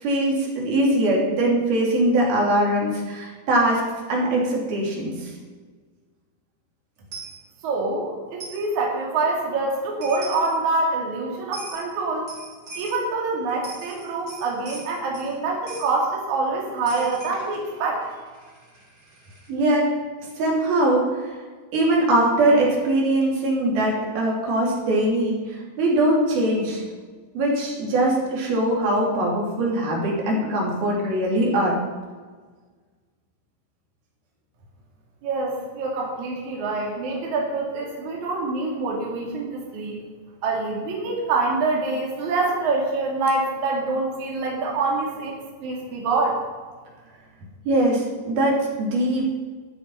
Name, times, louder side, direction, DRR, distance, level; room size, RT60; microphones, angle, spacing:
voice 1, 0.0-3.8 4.1-5.3 19.5-19.9 20.4-21.3 21.7-26.8 27.3-31.8 47.7-49.3, right 1 dB, 80° right, -2 dB, 4.9 m, -21 dB
Coin (dropping), 7.1-7.4 8.4-8.7 9.7-9.8 10.0-10.5 11.5-11.8 12.3-13.0 13.5-15.3 15.7-15.9 16.9-19.5, right 3 dB, 35° right, 4.3 m, -40 dB
voice 2, 7.6-12.3 12.8-18.0 35.2-40.0 40.4-45.4 45.6-46.4, right 3 dB, 55° right, -2 dB, 3.6 m, -25 dB
12.5 x 11.5 x 5.6 m, 1.5 s
omnidirectional pair, 4.2 m